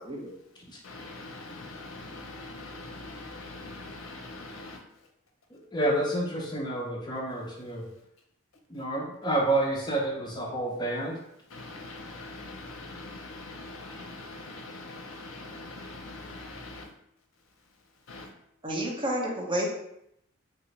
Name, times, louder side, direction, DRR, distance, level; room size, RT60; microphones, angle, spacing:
voice 1, 0.0-0.3 18.6-19.7, equal, 25° right, -2 dB, 0.6 m, -30 dB
voice 2, 0.8-4.8 11.5-16.9 18.1-18.3, left 2 dB, 70° left, 3 dB, 0.6 m, -42 dB
voice 3, 5.5-7.8 8.7-11.2, right 1 dB, 20° left, -2 dB, 0.5 m, -29 dB
3.2 x 2.4 x 3.0 m, 0.77 s
head